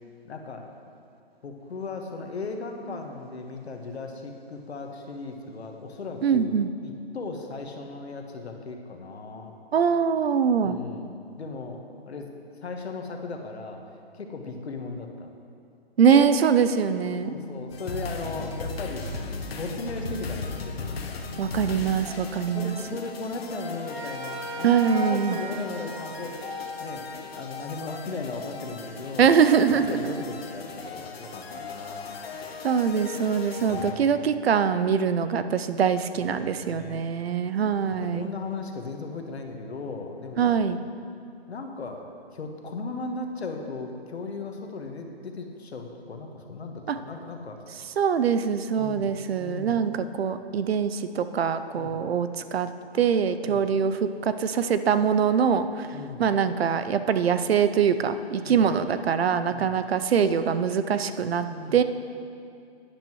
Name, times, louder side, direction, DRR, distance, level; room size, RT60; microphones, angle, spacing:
voice 1, 0.2-0.7 1.4-9.5 10.6-11.1 11.4-12.3 12.6-13.8 14.1-15.3 16.1-16.3 17.2-19.1 19.4-21.2 22.0-22.1 22.5-27.1 27.3-29.3 29.7-32.2 33.7-34.3 36.1-37.0 37.9-40.6 41.5-42.0 42.3-47.8 48.8-49.1 49.4-49.8 51.7-52.0 53.5-53.7 55.9-56.3 58.4-58.7 59.5-59.8 61.3-61.8, left 3 dB, 90° left, 3 dB, 1.4 m, -37 dB
voice 2, 6.2-6.7 9.7-10.8 16.0-17.3 21.4-22.7 24.6-25.4 29.2-30.1 32.6-38.3 40.4-40.8 46.9-47.0 48.0-52.7 52.9-55.9 56.2-61.5 61.7-61.8, right 7 dB, 70° right, 11 dB, 0.6 m, -23 dB
sound 1, 17.7-33.9, left 4 dB, 70° left, 1.1 m, -37 dB
sound 2, 23.8-27.5, right 2 dB, 5° right, 0.6 m, -39 dB
12.0 x 9.9 x 3.1 m, 2.4 s
hypercardioid pair, 170°, 32 cm